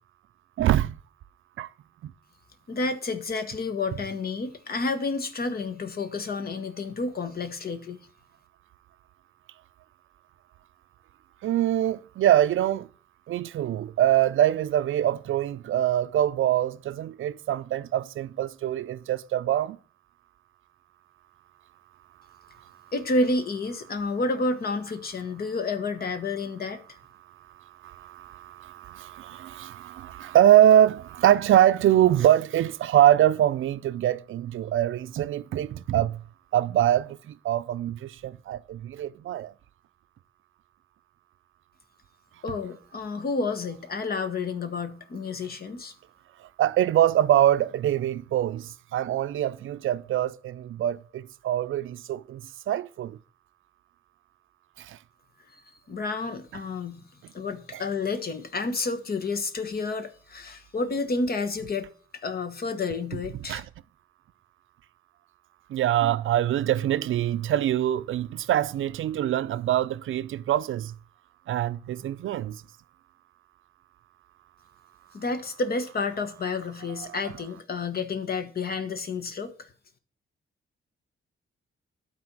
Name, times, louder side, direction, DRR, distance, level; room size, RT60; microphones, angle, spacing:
voice 1, 0.6-0.9 1.6-1.7 11.4-12.9 13.3-19.8 27.8-36.2 36.5-37.2 37.4-39.5 46.6-52.4 52.7-53.2 54.9-55.0 63.5-63.6 65.7-70.9 71.5-72.6, right 12 dB, 70° right, 0.5 m, -24 dB
voice 2, 2.7-8.0 22.9-26.8 42.4-45.9 55.9-57.0 57.3-61.9 62.2-63.6 75.1-79.7, left 3 dB, 45° left, 1.2 m, -30 dB
11.5 x 4.3 x 6.0 m
cardioid pair, 105°, 21 cm